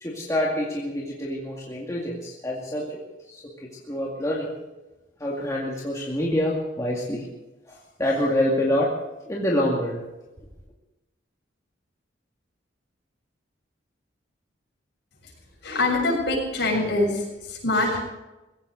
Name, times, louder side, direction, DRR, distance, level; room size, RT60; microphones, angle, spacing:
voice 1, 0.0-3.0 3.3-4.5 5.2-7.3 7.7-8.9 9.2-10.0, left 1 dB, 15° left, -4 dB, 2.2 m, -26 dB
voice 2, 15.6-17.1 17.6-18.0, left 2 dB, 60° left, -2 dB, 7.2 m, -23 dB
20.5 x 16.5 x 4.0 m, 1.1 s
head